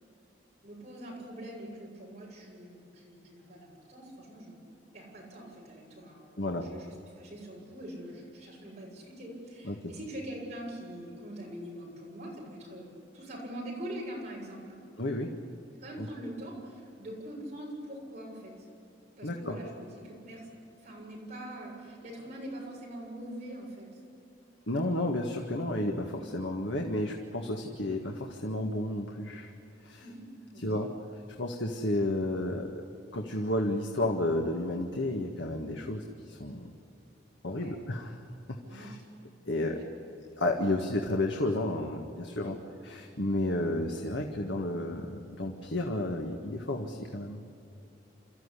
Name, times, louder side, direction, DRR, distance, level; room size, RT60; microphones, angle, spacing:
voice 1, 0.6-4.6 4.9-12.9 13.1-14.8 15.8-18.7 19.2-20.5 20.8-24.0 30.0-30.2 30.5-30.9 37.5-37.8 38.6-39.0 39.5-39.8 42.4-42.6, right 1 dB, 35° right, -3 dB, 7.4 m, -43 dB
voice 2, 6.4-6.7 9.6-9.9 15.0-15.3 16.0-16.1 19.2-19.6 24.7-29.5 29.8-30.0 30.6-30.9 31.4-32.8 33.1-36.7 37.4-38.2 38.5-39.0 39.5-42.6 42.8-47.4, left 1 dB, 80° left, 2 dB, 1.8 m, -32 dB
28.0 x 14.5 x 10.0 m, 2.8 s
head